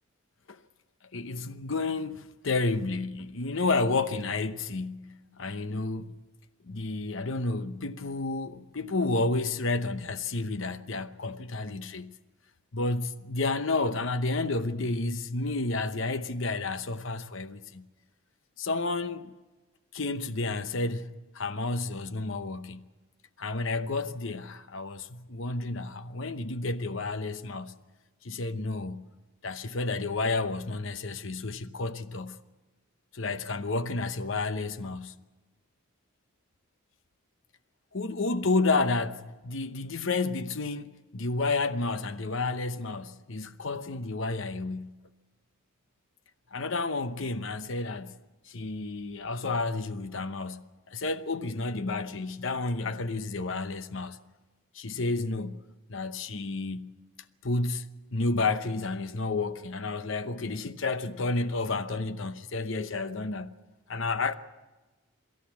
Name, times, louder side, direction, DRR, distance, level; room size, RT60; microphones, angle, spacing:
voice 1, 1.1-6.1 6.7-12.1 12.7-17.8 18.6-19.3 19.9-22.9 23.4-27.7 28.2-29.1 29.4-32.4 33.1-35.2 37.9-44.9 46.5-48.1 48.5-54.2 54.7-55.6 55.9-56.9 57.4-63.5 63.9-64.3, left 3 dB, 60° left, 0.8 m, -31 dB
24.0 x 14.0 x 8.4 m
head